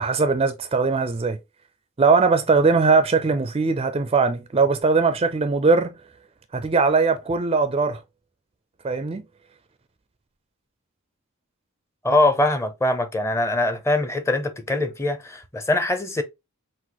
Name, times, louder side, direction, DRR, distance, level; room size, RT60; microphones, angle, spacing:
voice 1, 0.0-1.4 2.0-5.9 6.5-8.0 8.8-9.2, right 4 dB, 25° right, 0.4 m, -20 dB
voice 2, 12.0-16.2, left 2 dB, 15° left, 0.6 m, -22 dB
6.0 x 2.5 x 2.9 m
head